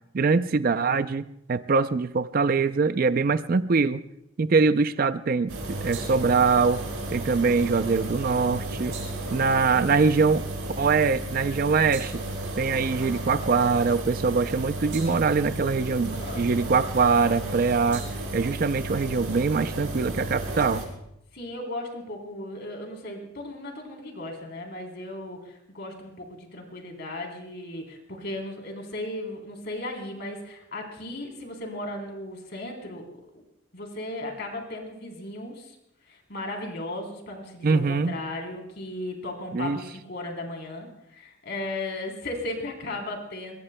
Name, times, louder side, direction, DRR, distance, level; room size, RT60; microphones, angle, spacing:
voice 1, 0.1-4.0 4.4-6.8 7.1-9.0 9.3-10.5 10.8-12.2 12.6-18.1 18.3-20.8 37.6-38.2 39.5-39.8, right 4 dB, 45° right, 13 dB, 0.4 m, -23 dB
sound 1, 5.5-20.9, right 1 dB, 85° right, 5.2 m, -33 dB
voice 2, 9.1-9.5 16.1-16.5 21.3-33.1 33.3-33.4 33.7-35.8 36.1-43.6, left 1 dB, 55° left, 2 dB, 3.5 m, -36 dB
22.5 x 22.0 x 2.2 m, 0.79 s
head